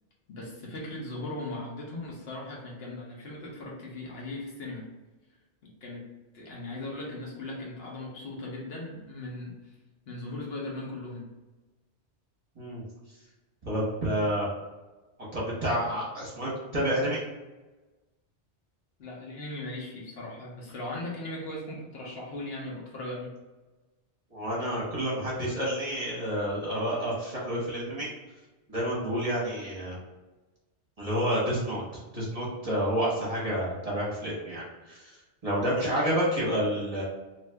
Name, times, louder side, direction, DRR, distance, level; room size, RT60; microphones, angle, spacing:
voice 1, 0.3-4.9 5.6-9.7 10.1-11.3 19.0-23.4, left 2 dB, 65° left, -3 dB, 1.0 m, -38 dB
voice 2, 13.6-14.5 15.3-17.2 24.3-28.1 28.7-29.9 31.0-31.8 32.1-35.2 35.4-37.0, equal, 35° right, -7 dB, 0.9 m, -29 dB
2.7 x 2.4 x 3.3 m, 1.2 s
omnidirectional pair, 1.2 m